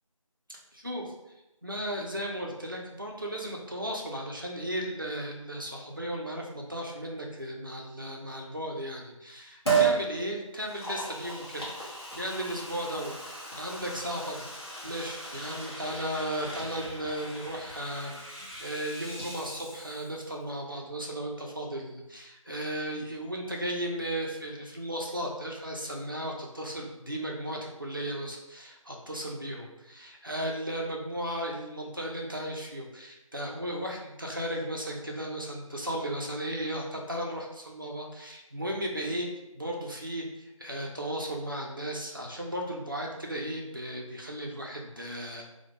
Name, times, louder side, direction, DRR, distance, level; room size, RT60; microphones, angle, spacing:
voice 1, 0.5-1.1 1.6-14.5 14.8-39.3 39.5-45.5, right 1 dB, 40° right, -1 dB, 0.4 m, -35 dB
Liquid, 9.6-10.0 10.6-20.2 20.5-20.6, right 5 dB, 50° left, 0.8 m, -34 dB
2.2 x 2.1 x 2.8 m, 0.95 s
figure-of-eight pair, 170°, 18 cm